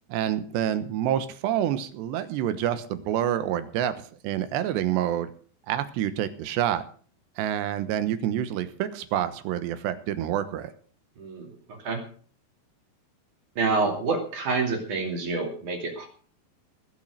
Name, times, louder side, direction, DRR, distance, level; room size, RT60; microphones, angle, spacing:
voice 1, 0.1-3.9 4.2-5.3 5.7-6.8 7.4-10.7, right 11 dB, 90° right, 12 dB, 3.3 m, -27 dB
voice 2, 11.2-12.0 13.6-16.1, right 4 dB, 50° right, 4 dB, 3.8 m, -28 dB
20.0 x 7.6 x 6.5 m, 0.44 s
omnidirectional pair, 4.9 m